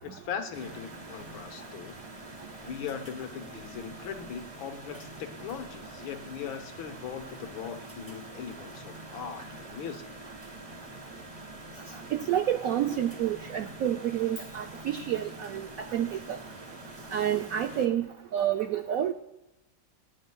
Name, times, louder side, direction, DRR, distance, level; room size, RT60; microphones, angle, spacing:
voice 1, 0.0-2.0 2.6-10.3, left 8 dB, 85° left, 6 dB, 1.9 m, -39 dB
sound 1, 0.5-17.9, right 1 dB, 25° right, 1.0 m, -45 dB
voice 2, 12.1-16.4 17.1-19.1, right 10 dB, 85° right, 7 dB, 0.7 m, -29 dB
25.5 x 9.1 x 2.3 m, 0.96 s
omnidirectional pair, 2.1 m